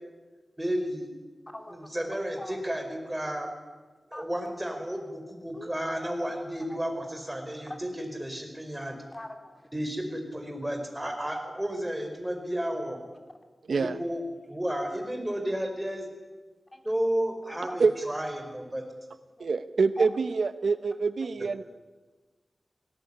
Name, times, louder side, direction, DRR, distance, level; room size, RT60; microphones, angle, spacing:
voice 1, 0.6-1.1 1.7-3.5 4.1-8.9 9.7-13.0 13.8-16.1 16.8-18.8, equal, 10° right, 5 dB, 5.1 m, -32 dB
voice 2, 1.5-1.9 2.4-2.6 4.1-4.3 5.5-5.7 6.7-6.8 7.7-7.8 8.9-9.6 16.7-16.9 17.5-17.7 19.4-19.5 20.0-20.1, left 1 dB, 20° left, 5 dB, 2.8 m, -41 dB
voice 3, 19.4-21.6, right 4 dB, 85° right, 12 dB, 0.8 m, -25 dB
19.5 x 18.0 x 10.0 m, 1.3 s
wide cardioid pair, 75°, 0 cm